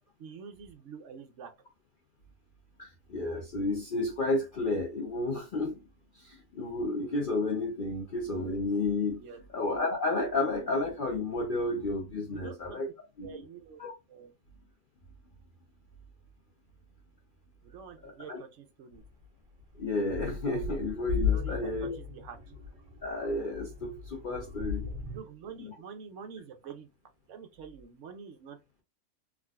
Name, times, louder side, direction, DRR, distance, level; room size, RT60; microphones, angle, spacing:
voice 1, 0.2-1.5 9.2-9.4 12.3-12.8 13.2-13.8 14.1-14.3 17.6-19.0 21.3-22.4 25.1-26.9 27.3-28.8, right 6 dB, 65° right, 0.9 m, -46 dB
voice 2, 2.8-5.8 6.1-9.2 9.5-12.9 13.2-13.4 13.8-13.9 18.0-18.4 19.8-21.9 23.0-24.9 25.7-25.8, left 2 dB, 55° left, 0.6 m, -32 dB
sound 1, 18.9-19.1 19.6-25.2, left 6 dB, 40° right, 1.4 m, -35 dB
3.6 x 2.4 x 2.3 m
omnidirectional pair, 1.5 m